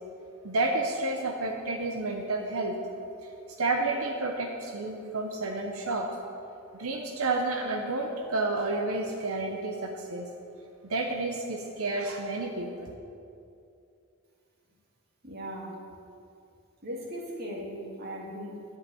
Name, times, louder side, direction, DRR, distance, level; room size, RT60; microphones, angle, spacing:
voice 1, 0.4-2.8 3.6-6.1 6.7-10.3 10.8-12.9, right 2 dB, 85° right, 2 dB, 0.9 m, -30 dB
voice 2, 15.2-15.8 16.8-18.7, equal, 50° right, -2 dB, 2.0 m, -38 dB
10.5 x 5.8 x 8.4 m, 2.6 s
head